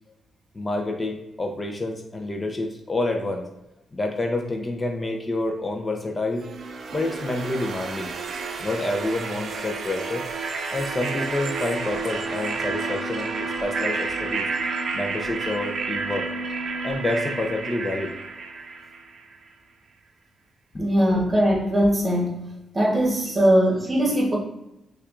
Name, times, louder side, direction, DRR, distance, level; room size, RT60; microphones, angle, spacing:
voice 1, 0.5-3.5 3.9-6.4 6.9-8.1 8.6-10.2 10.7-14.5 14.9-16.3 16.8-18.1 20.7-20.9 21.1-21.2, left 2 dB, 30° left, 2 dB, 0.4 m, -28 dB
sound 1, 6.4-19.3, right 4 dB, 65° right, 0.4 m, -30 dB
voice 2, 20.8-22.4 22.7-24.4, equal, 30° right, -2 dB, 1.1 m, -20 dB
5.6 x 2.3 x 2.4 m, 0.90 s
cardioid pair, 80°, 0 cm